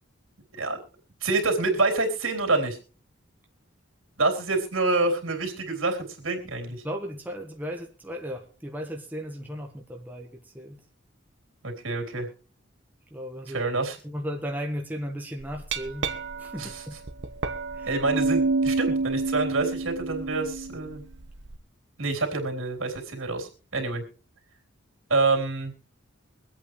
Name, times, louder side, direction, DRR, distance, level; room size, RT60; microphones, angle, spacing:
voice 1, 1.2-2.8 4.2-6.8 11.6-12.3 13.5-14.0 16.6-16.8 17.9-21.0 22.0-24.0 25.1-25.7, right 3 dB, 75° right, 3 dB, 3.6 m, -27 dB
voice 2, 6.8-10.8 13.1-13.6 14.0-16.1 16.4-17.0 17.7-17.9, equal, 10° right, 2 dB, 1.2 m, -35 dB
Glass, 15.4-21.6, right 3 dB, 55° right, 1.1 m, -29 dB
24.0 x 8.5 x 3.2 m, 0.38 s
head